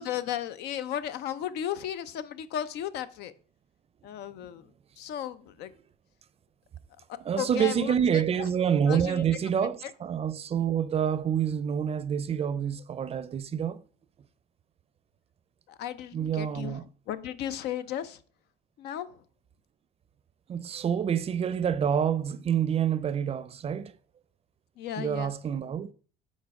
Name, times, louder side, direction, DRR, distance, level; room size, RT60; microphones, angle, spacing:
voice 1, 0.0-3.3 4.0-4.7 5.0-5.7 7.4-8.2 8.9-9.2 9.8-9.9 15.7-16.8 17.1-18.2 18.8-19.2 24.8-25.3, left 10 dB, 80° left, 0.6 m, -35 dB
voice 2, 7.3-13.8 16.1-16.9 20.5-23.9 25.0-25.9, right 8 dB, 35° right, 0.5 m, -27 dB
7.3 x 4.2 x 4.8 m
cardioid pair, 110°, 17 cm